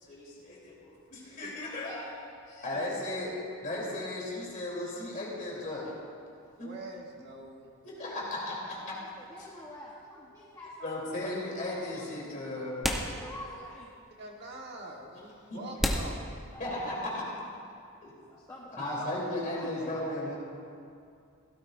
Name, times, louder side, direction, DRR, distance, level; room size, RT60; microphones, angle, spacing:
voice 1, 0.1-3.3 3.6-5.9 6.6-6.7 7.8-9.0 10.8-12.7 15.5-15.6 16.6-17.2 18.7-20.3, left 1 dB, 40° left, -5 dB, 3.3 m, -36 dB
voice 2, 6.6-7.7 14.2-16.2, right 1 dB, 50° right, 0 dB, 1.4 m, -44 dB
voice 3, 8.4-13.9 16.1-16.2 16.5-16.9 17.3-17.6 18.1-20.1, left 1 dB, 15° left, -5 dB, 1.1 m, -48 dB
sound 1, 10.9-11.0 12.2-12.3 12.8-13.7 14.1-14.2 14.9-15.0 15.8-17.0, equal, ahead, 0.9 m, -33 dB
16.5 x 12.5 x 2.6 m, 2.4 s
head